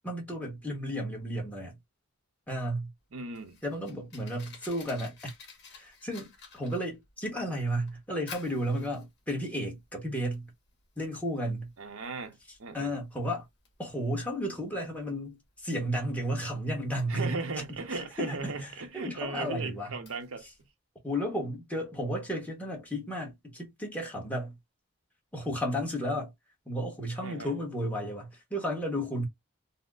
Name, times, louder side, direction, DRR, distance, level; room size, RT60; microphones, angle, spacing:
voice 1, 0.0-1.8 2.5-2.9 3.6-5.3 5.7-10.5 11.0-11.7 12.7-13.5 13.8-17.3 17.9-18.7 18.9-20.0 21.0-24.6 25.3-26.3 26.7-29.3, equal, 5° left, 1.0 m, -33 dB
Fire, 3.0-20.7, left 5 dB, 55° left, 1.4 m, -53 dB
voice 2, 3.1-3.6 11.8-12.9 17.1-20.4 27.2-27.5, right 3 dB, 75° right, 0.7 m, -37 dB
4.1 x 2.0 x 2.4 m
head